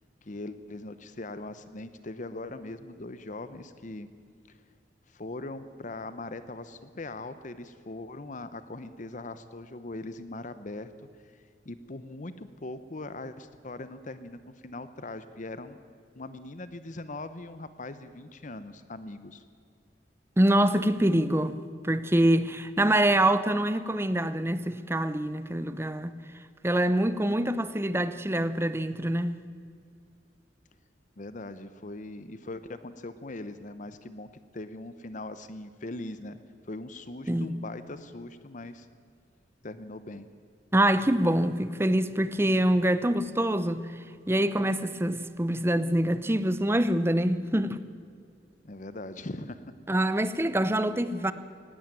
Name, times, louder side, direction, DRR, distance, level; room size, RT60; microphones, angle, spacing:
voice 1, 0.2-4.1 4.5-4.6 5.1-10.9 11.6-15.8 16.2-19.4 31.2-34.3 34.5-36.4 36.7-38.9 39.6-40.3 48.6-49.7, left 2 dB, 45° left, 0.8 m, -40 dB
voice 2, 20.4-21.6 21.8-26.2 26.6-29.4 37.3-37.5 40.7-43.9 44.3-47.8 49.9-51.3, right 1 dB, 15° right, 0.7 m, -25 dB
18.5 x 16.5 x 9.0 m
head